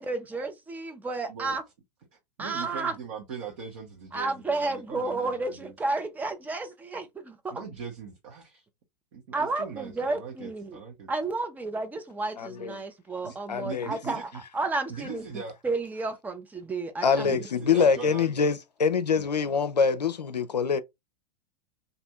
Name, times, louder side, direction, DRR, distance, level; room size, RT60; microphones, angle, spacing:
voice 1, 0.0-1.6 2.4-2.9 4.1-7.6 9.3-10.8 11.1-15.3 15.6-17.4, right 3 dB, 10° right, 0.4 m, -32 dB
voice 2, 2.4-5.7 7.5-8.6 9.1-11.1 13.2-13.4 13.6-14.4 14.9-15.5 17.2-18.3 19.2-19.3, right 5 dB, 50° right, 1.0 m, -40 dB
voice 3, 12.4-12.8 13.5-13.9 17.0-20.8, left 6 dB, 80° left, 0.5 m, -25 dB
2.6 x 2.6 x 3.3 m
figure-of-eight pair, 95°, 21 cm